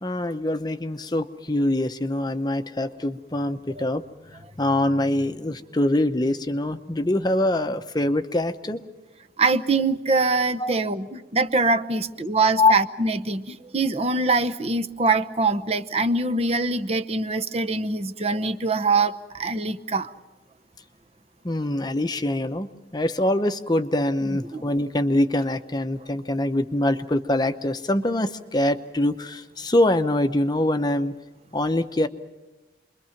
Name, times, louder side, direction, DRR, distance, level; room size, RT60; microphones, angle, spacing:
voice 1, 0.0-4.0 4.6-8.8 10.6-10.7 12.6-12.7 21.4-22.7 22.9-31.1 31.5-32.1, left 1 dB, 20° left, 9 dB, 0.8 m, -24 dB
voice 2, 9.4-20.1 24.5-24.6, right 3 dB, 35° right, 9 dB, 0.8 m, -23 dB
28.0 x 22.5 x 5.9 m, 1.1 s
head